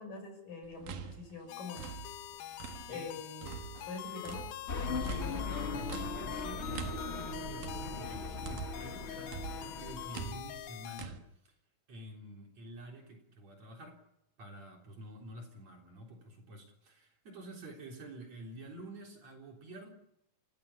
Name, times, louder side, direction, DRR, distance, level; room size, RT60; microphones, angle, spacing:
voice 1, 0.0-1.9 2.9-3.5 3.9-4.5, left 4 dB, 70° left, 4 dB, 7.7 m, -44 dB
sound 1, 0.6-3.1 3.4-9.0 9.3-11.2, right 8 dB, 70° right, 3.2 m, -45 dB
sound 2, 1.5-11.1, left 12 dB, 90° left, 2.9 m, -45 dB
sound 3, 4.7-10.2, left 3 dB, 50° left, 0.7 m, -39 dB
voice 2, 5.0-11.2 11.9-14.0 14.4-19.9, right 1 dB, 50° right, 1 dB, 4.8 m, -49 dB
29.5 x 15.5 x 7.2 m, 0.81 s
omnidirectional pair, 4.1 m